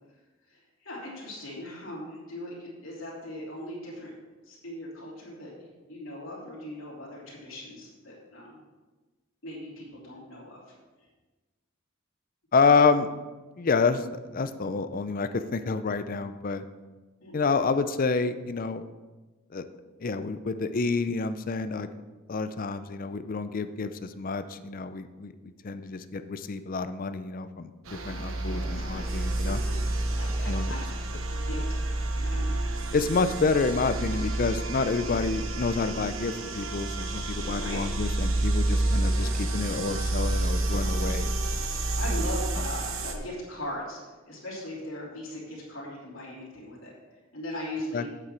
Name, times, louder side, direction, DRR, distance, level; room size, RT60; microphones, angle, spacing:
voice 1, 0.5-4.1 4.4-8.6 9.4-10.6 17.2-17.6 28.4-29.5 30.1-31.8 32.1-32.5 33.3-33.4 37.4-37.8 39.1-39.4 40.7-40.9 41.9-44.0 44.2-46.9 47.3-48.1, left 1 dB, 70° left, -5 dB, 3.1 m, -39 dB
voice 2, 12.5-13.1 13.6-16.6 17.3-18.8 19.5-19.6 20.0-21.9 22.3-29.6 30.5-30.7 32.9-41.4 47.9-48.0, left 4 dB, 40° left, 11 dB, 0.5 m, -28 dB
sound 1, 27.9-43.1, right 2 dB, 75° right, 1.0 m, -29 dB
8.4 x 8.0 x 4.4 m, 1.2 s
head